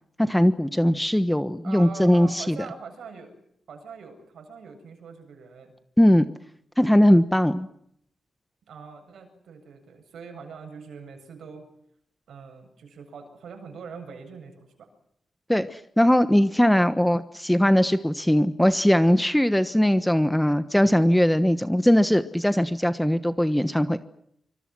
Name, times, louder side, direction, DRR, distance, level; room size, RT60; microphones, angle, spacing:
voice 1, 0.2-2.6 6.0-6.3 6.8-7.7 15.5-24.0, equal, 5° left, 11 dB, 1.2 m, -20 dB
voice 2, 1.6-3.4 3.7-5.8 8.7-11.7 12.3-14.9, right 5 dB, 85° right, 5 dB, 7.6 m, -43 dB
27.0 x 25.5 x 6.2 m, 0.72 s
wide cardioid pair, 135°, 0 cm